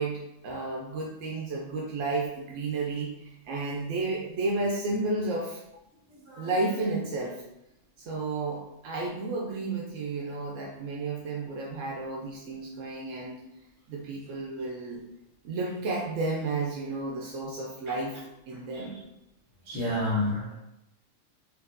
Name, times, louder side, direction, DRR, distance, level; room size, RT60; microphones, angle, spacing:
voice 1, 0.0-5.6 6.4-7.4 8.0-13.4 13.9-15.0 15.4-18.2 18.5-19.0, right 3 dB, 85° right, -2 dB, 1.0 m, -32 dB
voice 2, 6.1-6.5 17.9-18.0 18.7-18.8 19.7-20.6, left 1 dB, 60° right, -5 dB, 1.5 m, -30 dB
4.8 x 2.6 x 2.5 m, 0.87 s
omnidirectional pair, 1.3 m